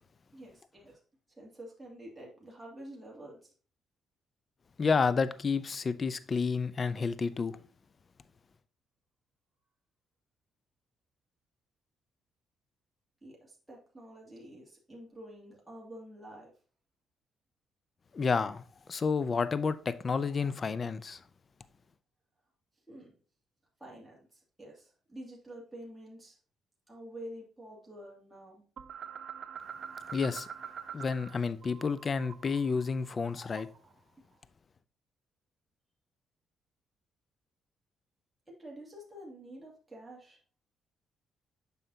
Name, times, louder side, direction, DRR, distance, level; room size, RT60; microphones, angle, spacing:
voice 1, 0.3-1.0 1.3-3.5 13.2-16.5 22.9-23.1 23.8-26.4 26.9-28.6 38.5-40.4, right 1 dB, 10° right, 2.4 m, -48 dB
voice 2, 4.8-7.6 18.1-21.2 30.1-30.5 30.9-33.7, left 5 dB, 40° left, 0.5 m, -30 dB
sound 1, 28.8-31.4 31.6-33.9, right 7 dB, 55° right, 0.7 m, -45 dB
7.4 x 5.7 x 2.7 m
cardioid pair, 90°, 0 cm